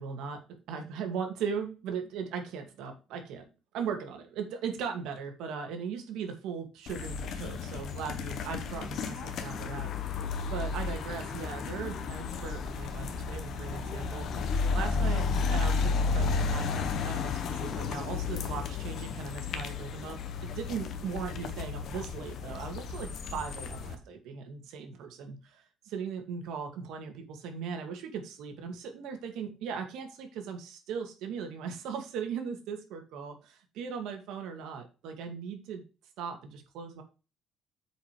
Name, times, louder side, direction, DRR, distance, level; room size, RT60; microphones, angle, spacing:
voice 1, 0.0-0.4 0.7-3.4 3.7-9.9 10.1-14.4 14.7-15.2 15.5-20.2 20.5-35.8 36.2-37.0, right 6 dB, 75° right, 4 dB, 2.2 m, -38 dB
sound 1, 6.9-23.9, left 5 dB, 50° left, 1.1 m, -33 dB
7.9 x 5.0 x 4.8 m, 0.32 s
cardioid pair, 170°, 0 cm